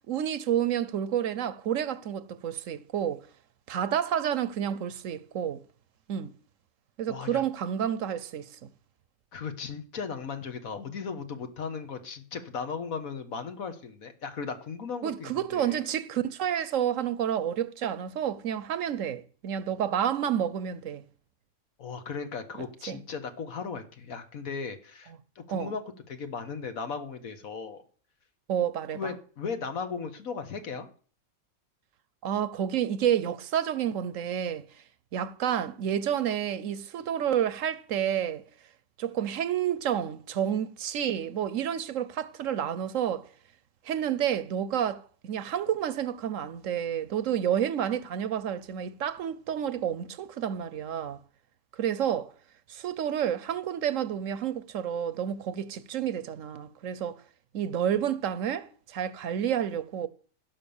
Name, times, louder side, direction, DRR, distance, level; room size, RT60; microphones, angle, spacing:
voice 1, 0.0-3.2 3.7-5.6 6.1-6.3 7.0-8.5 15.0-21.0 22.9-23.0 25.5-25.7 28.5-29.1 32.2-34.7 35.1-38.4 39.0-43.3 43.8-51.2 51.7-52.3 52.7-57.2 57.5-60.1, right 9 dB, 70° right, 1.0 m, -30 dB
voice 2, 7.1-7.4 9.3-15.8 21.8-27.8 28.9-30.9, left 5 dB, 75° left, 1.8 m, -37 dB
16.0 x 5.6 x 7.1 m
omnidirectional pair, 1.5 m